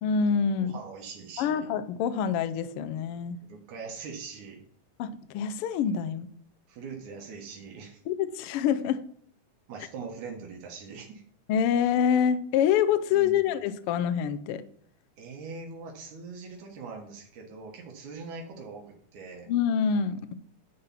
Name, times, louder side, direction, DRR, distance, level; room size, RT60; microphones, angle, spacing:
voice 1, 0.0-0.8 1.4-3.4 5.0-6.3 8.1-9.0 11.5-14.6 19.5-20.3, left 8 dB, 90° left, 11 dB, 1.2 m, -26 dB
voice 2, 0.6-1.7 3.4-4.6 6.7-8.0 9.7-11.2 13.1-13.5 15.2-19.5, right 4 dB, 85° right, 0 dB, 2.7 m, -42 dB
10.5 x 4.1 x 5.7 m, 0.62 s
omnidirectional pair, 3.3 m